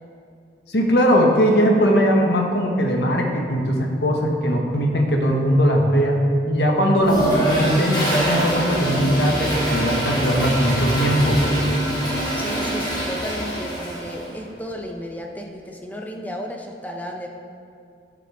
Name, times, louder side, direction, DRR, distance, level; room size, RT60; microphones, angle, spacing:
voice 1, 0.7-6.2 6.5-11.4, equal, 70° left, 1 dB, 1.3 m, -19 dB
Toilet flush, 7.0-14.3, right 1 dB, 25° left, 2.3 m, -24 dB
voice 2, 12.3-17.3, equal, 10° left, 1 dB, 0.7 m, -33 dB
12.0 x 7.5 x 3.5 m, 2.3 s
head